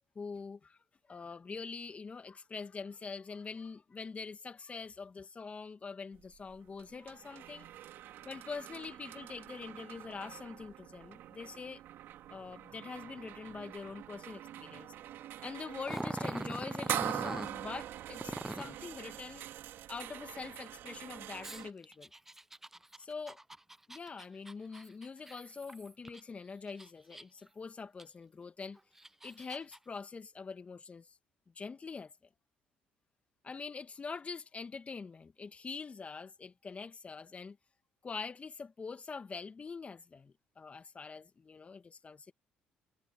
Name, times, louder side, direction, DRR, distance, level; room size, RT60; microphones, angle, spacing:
voice 1, 0.2-0.8 1.1-7.7 8.2-11.8 12.3-14.9 15.4-19.5 19.9-22.1 23.0-23.4 23.9-28.8 29.2-31.2 31.6-32.1 33.4-37.6 38.0-42.3, left 4 dB, 35° left, 2.2 m, -44 dB
sound 1, 6.1-21.7, right 12 dB, 65° right, 3.2 m, -44 dB
Growling, 15.8-17.5 18.2-18.8 21.4-26.2 26.7-27.5 28.0-28.1 28.8-29.8, right 1 dB, 10° right, 0.7 m, -42 dB
hypercardioid pair, 60°, 4 cm